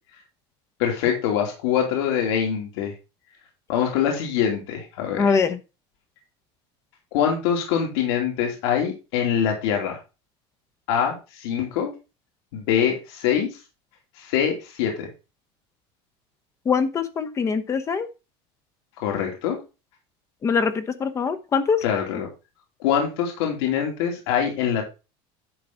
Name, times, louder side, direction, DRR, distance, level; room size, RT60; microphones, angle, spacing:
voice 1, 0.8-2.9 3.7-5.4 7.1-10.0 10.9-11.9 12.5-13.6 14.2-15.1 19.0-19.6 21.8-22.3 22.8-24.8, left 8 dB, 85° left, 2.8 m, -24 dB
voice 2, 5.2-5.6 16.7-18.1 20.4-21.8, left 5 dB, 25° left, 1.0 m, -23 dB
11.0 x 5.7 x 3.9 m
cardioid pair, 155°, 13 cm